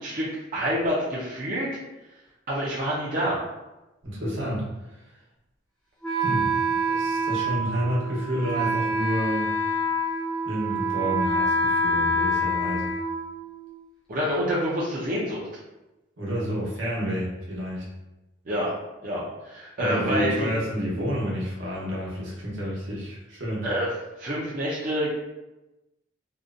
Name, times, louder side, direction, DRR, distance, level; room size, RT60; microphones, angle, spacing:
voice 1, 0.0-1.7 2.5-3.4 14.1-15.5 18.5-20.5 23.6-23.9 24.2-25.1, equal, 45° right, -6 dB, 0.4 m, -27 dB
voice 2, 4.0-5.0 6.1-6.5 6.8-9.5 10.5-12.9 16.2-17.8 19.8-23.7, equal, 80° right, -5 dB, 0.9 m, -29 dB
Wind instrument woodwind instrument, 6.0-13.8, right 1 dB, 5° left, 0.6 m, -26 dB
2.6 x 2.1 x 2.4 m, 1.0 s
head